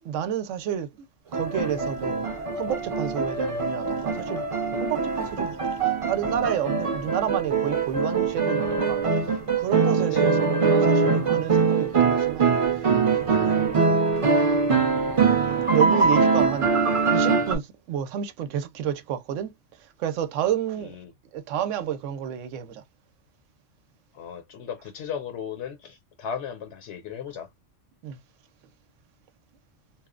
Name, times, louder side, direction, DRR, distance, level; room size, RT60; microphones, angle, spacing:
voice 1, 0.0-1.1 1.3-2.3 2.6-4.5 4.8-5.6 6.1-9.0 9.6-12.5 13.1-13.8 15.2-16.7 17.1-19.5 20.0-20.9 21.3-22.8 28.0-28.2, right 10 dB, 85° right, 0.9 m, -30 dB
sound 1, 1.3-17.6, right 5 dB, 35° right, 0.6 m, -23 dB
voice 2, 24.1-27.5, left 7 dB, 70° left, 0.9 m, -36 dB
2.9 x 2.0 x 2.3 m
omnidirectional pair, 1.3 m